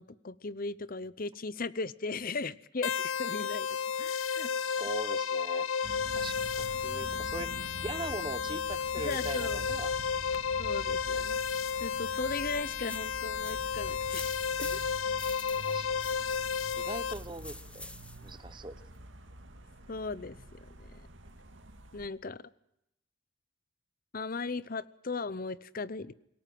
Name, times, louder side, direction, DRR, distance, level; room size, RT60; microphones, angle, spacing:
voice 1, 0.0-3.7 4.0-4.5 9.0-9.7 10.6-11.4 11.8-14.3 14.6-14.8 19.9-21.1 21.9-22.4 24.1-26.1, left 3 dB, 45° left, 19 dB, 0.8 m, -37 dB
sound 1, 2.8-17.1, left 6 dB, 85° left, 0.8 m, -32 dB
voice 2, 4.8-5.7 6.1-7.5 7.8-9.9 11.1-11.2 15.6-15.9 16.8-17.9 18.2-18.8, right 2 dB, 25° right, 14 dB, 1.0 m, -41 dB
sound 2, 5.8-22.1, right 1 dB, 70° right, 2.4 m, -46 dB
sound 3, 12.8-18.3, left 2 dB, 5° left, 1.0 m, -47 dB
26.0 x 18.0 x 7.7 m, 0.82 s
head